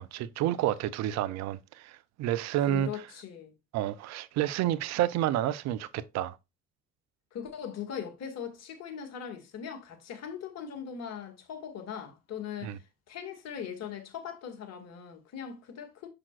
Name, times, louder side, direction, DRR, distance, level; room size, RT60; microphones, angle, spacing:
voice 1, 0.0-2.9 3.7-6.4 12.6-12.8, right 13 dB, 65° right, 0.6 m, -30 dB
voice 2, 2.6-3.5 7.3-16.1, left 8 dB, 60° left, 2.2 m, -40 dB
7.2 x 6.5 x 2.5 m
hypercardioid pair, 60°, 29 cm